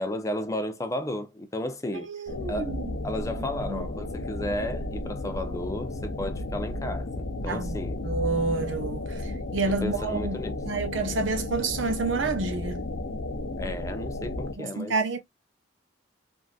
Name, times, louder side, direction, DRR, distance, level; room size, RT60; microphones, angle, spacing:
voice 1, 0.0-2.1 2.5-2.8 3.0-8.0 9.7-10.6 13.6-14.9, left 1 dB, 15° left, 0.4 m, -33 dB
voice 2, 2.1-2.9 3.7-3.8 7.5-7.7 8.0-9.2 9.5-12.8 14.5-15.2, right 3 dB, 80° right, 0.8 m, -29 dB
sound 1, 2.3-14.5, left 2 dB, 70° left, 0.7 m, -33 dB
3.5 x 2.6 x 2.3 m
head